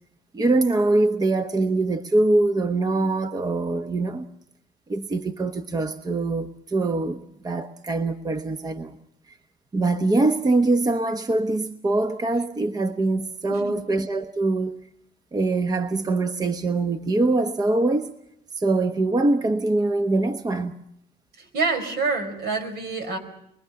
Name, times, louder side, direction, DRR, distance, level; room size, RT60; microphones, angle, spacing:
voice 1, 0.3-4.3 4.9-9.0 9.7-14.8 15.3-18.1 18.6-20.8, right 2 dB, 20° right, 1.0 m, -23 dB
voice 2, 21.4-23.2, right 4 dB, 75° right, 5.0 m, -27 dB
24.5 x 23.0 x 5.8 m
cardioid pair, 110°, 17 cm